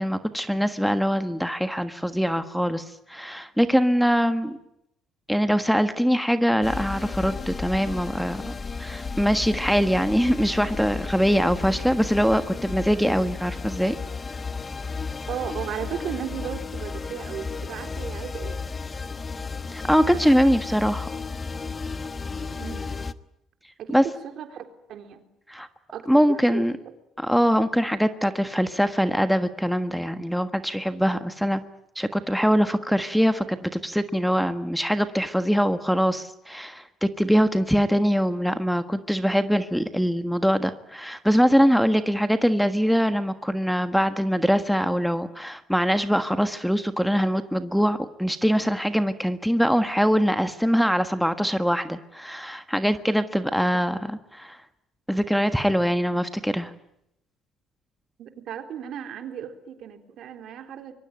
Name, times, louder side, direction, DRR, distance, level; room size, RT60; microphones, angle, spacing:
voice 1, 0.0-2.8 3.1-4.6 5.3-8.5 8.8-14.0 19.7-21.1 23.9-24.0 25.5-25.7 26.1-26.7 27.2-31.6 31.9-54.6 55.1-56.7, equal, ahead, 9 dB, 1.5 m, -23 dB
sound 1, 6.6-23.1, left 4 dB, 25° left, 1.2 m, -33 dB
voice 2, 15.3-18.6 22.5-22.9 23.8-25.2 25.9-26.6 58.2-60.9, right 9 dB, 60° right, 6 dB, 3.7 m, -35 dB
24.5 x 23.0 x 9.0 m, 0.81 s
cardioid pair, 105°, 0 cm